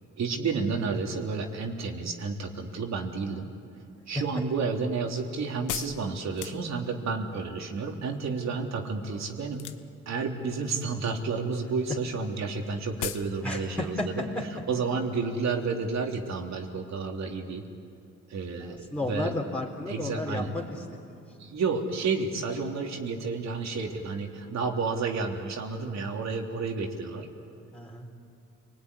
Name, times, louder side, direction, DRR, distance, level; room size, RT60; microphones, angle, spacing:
voice 1, 0.2-3.5 4.1-9.6 10.1-14.2 14.7-17.6 18.3-19.3 19.9-20.6 21.4-27.3, right 4 dB, 60° right, 2 dB, 3.4 m, -31 dB
sound 1, 4.1-7.1 9.5-10.1 10.4-11.0 11.3-11.5 11.8-11.9 12.0-12.1 12.5-12.6 13.0-13.3 13.6-13.7, left 11 dB, 80° left, 1.3 m, -37 dB
voice 2, 13.4-14.1 18.6-21.2 27.7-28.1, left 1 dB, 5° left, -2 dB, 4.0 m, -33 dB
29.5 x 20.5 x 9.9 m, 2.5 s
cardioid pair, 90°, 30 cm